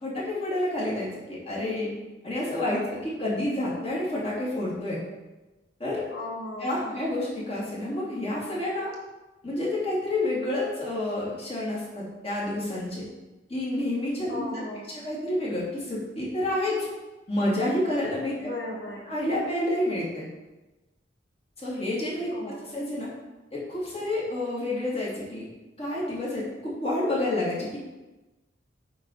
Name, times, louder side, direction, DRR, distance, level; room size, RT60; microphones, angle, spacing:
voice 1, 0.0-1.9 2.2-5.0 5.8-6.0 6.6-8.9 9.4-13.1 13.5-14.7 15.0-16.8 17.3-18.5 19.1-20.3 21.6-22.3 22.6-23.1 23.5-25.5 25.8-27.8, left 1 dB, 30° left, -6 dB, 2.5 m, -29 dB
voice 2, 6.1-7.0 14.3-15.0 18.4-19.1 22.3-22.6, left 1 dB, 70° left, -1 dB, 1.9 m, -37 dB
8.6 x 3.9 x 5.7 m, 1.1 s
head